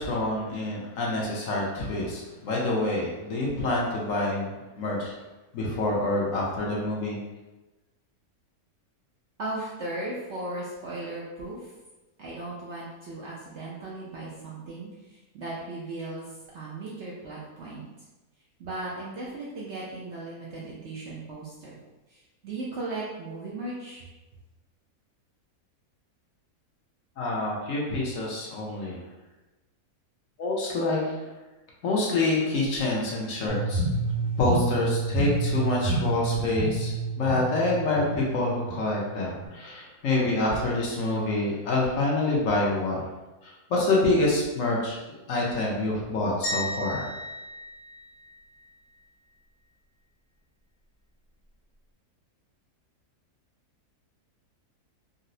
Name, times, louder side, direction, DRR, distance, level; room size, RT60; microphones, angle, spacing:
voice 1, 0.0-4.5 4.8-5.1 5.5-7.2 27.2-29.0 30.4-31.2 31.8-33.8 34.4-43.0 43.4-47.1, left 2 dB, 65° left, -3 dB, 1.0 m, -27 dB
voice 2, 9.4-11.7 12.2-16.2 16.5-17.8 18.6-21.7 22.1-24.0, right 2 dB, 65° right, -5 dB, 0.7 m, -37 dB
sound 1, 33.5-39.5, right 2 dB, 85° right, 1.4 m, -29 dB
sound 2, 46.4-48.7, left 1 dB, 25° left, 0.6 m, -35 dB
3.9 x 2.0 x 2.6 m, 1.1 s
omnidirectional pair, 1.6 m